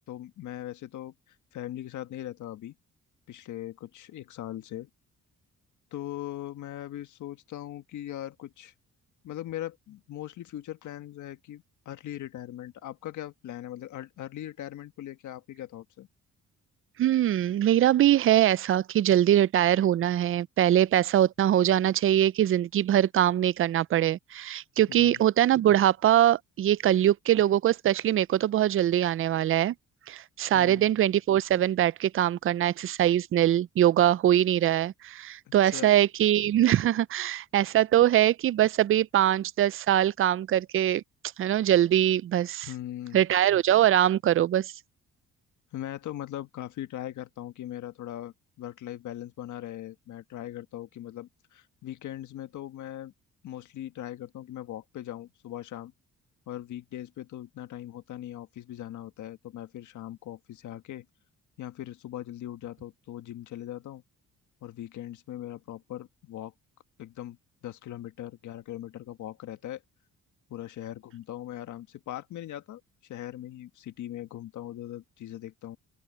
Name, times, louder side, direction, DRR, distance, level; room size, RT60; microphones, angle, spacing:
voice 1, 0.1-2.7 3.3-4.9 5.9-8.7 9.2-16.1 24.9-25.2 30.5-30.9 35.6-36.0 42.7-43.2 45.7-53.1 53.4-55.9 56.5-61.0 61.6-64.0 64.6-66.5 67.0-69.8 70.5-75.8, left 12 dB, 75° left, 1.6 m, -40 dB
voice 2, 17.0-29.7 30.1-41.0 41.4-42.7 43.1-44.7, right 12 dB, 45° right, 0.4 m, -23 dB
open air
cardioid pair, 90°, 30 cm